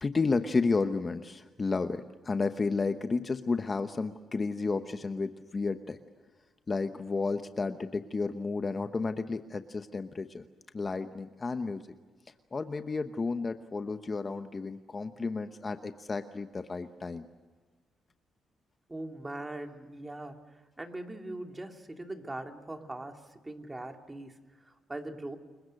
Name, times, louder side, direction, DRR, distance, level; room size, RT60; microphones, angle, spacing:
voice 1, 0.0-6.0 6.7-10.5 10.7-11.9 12.5-17.2, left 4 dB, 30° left, 9 dB, 1.0 m, -32 dB
voice 2, 18.9-25.4, right 2 dB, 15° right, 4 dB, 2.6 m, -41 dB
29.5 x 22.5 x 6.5 m, 1.4 s
cardioid pair, 105°, 0 cm